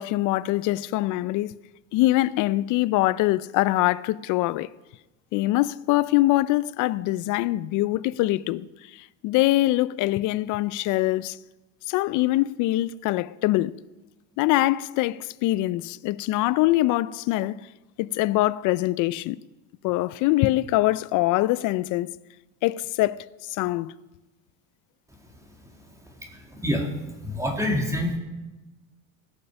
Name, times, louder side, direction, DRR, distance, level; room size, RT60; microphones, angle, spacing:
voice 1, 0.0-1.5 1.9-4.7 5.3-8.7 8.9-11.4 11.9-13.7 14.4-17.7 18.0-19.4 19.8-22.1 22.6-23.2 23.6-23.9, left 17 dB, 50° left, 0.5 m, -23 dB
voice 2, 26.3-26.9 27.2-28.2, left 1 dB, 10° right, 2.0 m, -26 dB
20.0 x 6.6 x 5.7 m
supercardioid pair, 120°, 39 cm